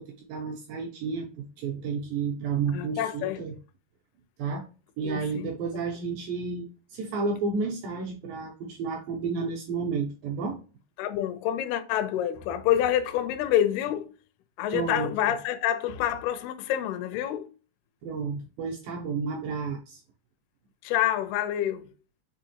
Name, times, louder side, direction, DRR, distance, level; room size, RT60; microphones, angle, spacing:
voice 1, 0.0-3.5 4.4-4.6 5.0-10.6 14.7-15.3 18.0-20.0, right 5 dB, 85° right, 2.0 m, -31 dB
voice 2, 2.7-3.4 5.0-5.5 11.0-14.1 14.6-17.5 20.8-21.9, left 11 dB, 80° left, 2.4 m, -27 dB
6.3 x 3.0 x 2.8 m
omnidirectional pair, 4.8 m